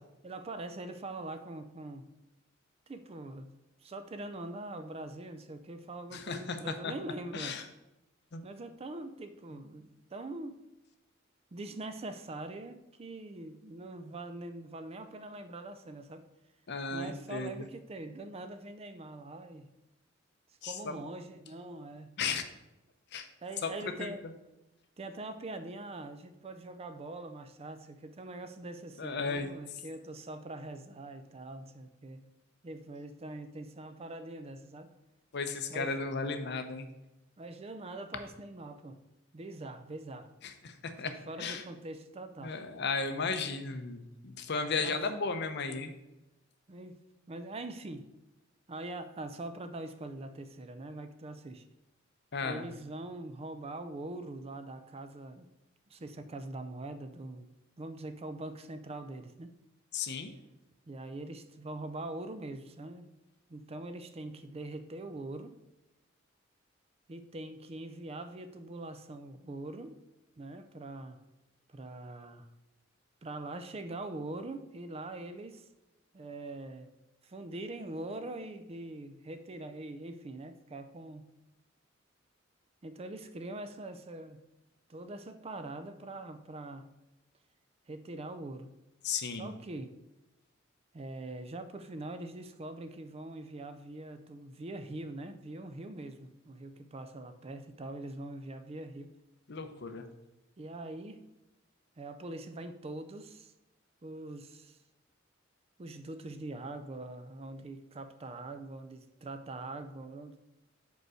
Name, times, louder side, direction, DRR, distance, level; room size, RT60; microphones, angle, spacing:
voice 1, 0.2-2.1 2.9-7.6 8.4-10.6 11.5-16.3 16.9-19.7 20.6-22.2 23.4-24.3 25.0-32.2 32.6-35.0 35.7-36.0 37.4-39.0 39.3-40.3 41.0-42.6 44.8-45.0 46.7-47.0 47.3-48.1 48.7-51.6 52.4-55.5 55.9-57.5 57.8-59.5 60.9-63.1 63.5-65.5 67.1-69.9 70.4-71.2 71.7-72.5 73.2-75.7 76.1-76.9 77.2-81.4 82.8-84.4 84.9-86.9 87.9-88.7 89.4-89.9 90.9-99.1 100.6-101.2 102.0-103.5 104.0-104.8 105.8-110.4, right 2 dB, 30° right, 10 dB, 0.4 m, -43 dB
voice 2, 6.1-6.6 6.8-6.9 7.3-7.6 8.3-8.4 9.5-9.6 16.7-17.7 20.6-20.9 22.2-22.4 23.1-23.3 23.6-23.7 24.0-24.1 29.0-29.5 35.3-36.9 40.4-41.1 41.4-41.6 42.4-45.9 52.3-52.6 59.9-60.3 89.0-89.5 99.5-100.1, left 4 dB, 60° left, 8 dB, 0.7 m, -35 dB
5.2 x 4.7 x 6.2 m, 0.97 s
head